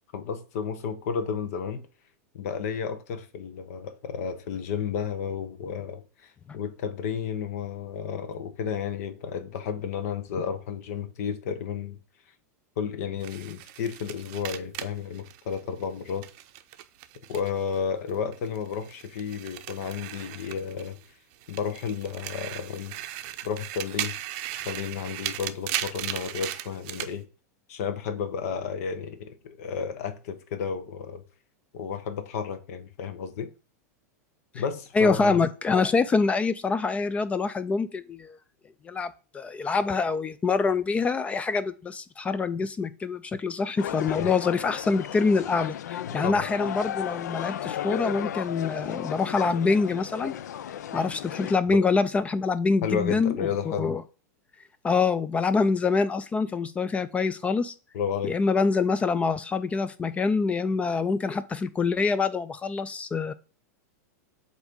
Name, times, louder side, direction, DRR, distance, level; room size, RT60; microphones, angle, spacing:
voice 1, 0.1-1.8 2.3-12.0 12.8-16.3 17.3-21.0 21.5-23.0 23.4-24.1 24.6-27.2 27.7-31.2 31.7-33.5 34.5-35.4 44.2-44.3 46.1-46.4 51.7-51.8 52.8-54.0 57.9-58.3, left 7 dB, 65° left, 0.9 m, -32 dB
sound 1, 13.2-17.8 18.1-21.1 21.4-27.1, right 13 dB, 50° right, 0.6 m, -37 dB
voice 2, 34.9-38.4 38.8-50.3 50.9-54.0 54.8-57.7 58.3-63.3, left 4 dB, 15° left, 0.3 m, -25 dB
sound 2, 43.8-51.6, left 10 dB, 90° left, 0.4 m, -34 dB
8.0 x 2.7 x 5.1 m
supercardioid pair, 140°, 9 cm